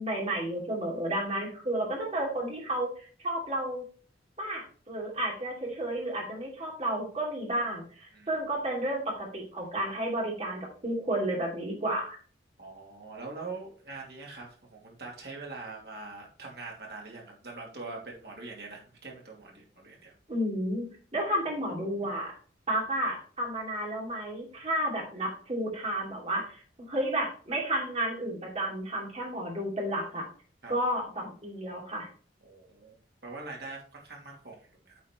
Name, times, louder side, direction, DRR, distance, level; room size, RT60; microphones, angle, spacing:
voice 1, 0.0-3.8 4.4-12.2 20.3-20.9 21.1-22.3 22.7-30.3 30.7-32.1, right 1 dB, 35° right, -2 dB, 2.7 m, -32 dB
voice 2, 12.6-20.1 30.6-30.7 32.4-33.0 33.2-35.0, right 3 dB, 60° right, -1 dB, 2.4 m, -43 dB
8.3 x 4.3 x 4.3 m, 0.43 s
head